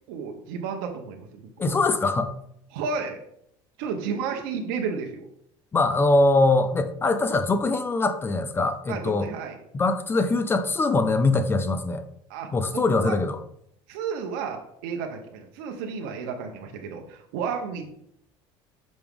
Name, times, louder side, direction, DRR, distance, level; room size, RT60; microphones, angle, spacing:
voice 1, 0.1-1.7 2.7-3.2 3.8-5.3 8.9-9.6 12.3-13.2 13.9-17.9, right 6 dB, 85° right, 3 dB, 0.8 m, -32 dB
voice 2, 1.6-2.3 5.7-9.3 9.7-12.0 12.5-13.4, left 3 dB, 20° left, 10 dB, 0.5 m, -22 dB
5.8 x 5.2 x 3.6 m, 0.72 s
cardioid pair, 120°, 11 cm